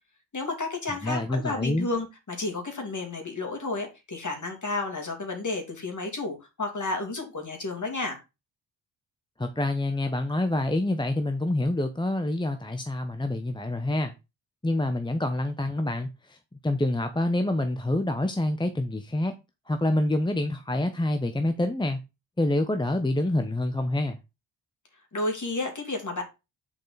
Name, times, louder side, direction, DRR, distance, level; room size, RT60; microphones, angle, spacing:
voice 1, 0.3-8.2 25.1-26.2, left 3 dB, 35° left, 2.9 m, -31 dB
voice 2, 1.0-1.9 9.4-14.1 14.6-16.4 16.6-19.3 19.7-22.0 22.4-24.2, left 1 dB, 10° left, 0.9 m, -27 dB
7.0 x 4.8 x 4.0 m
supercardioid pair, 45°, 49 cm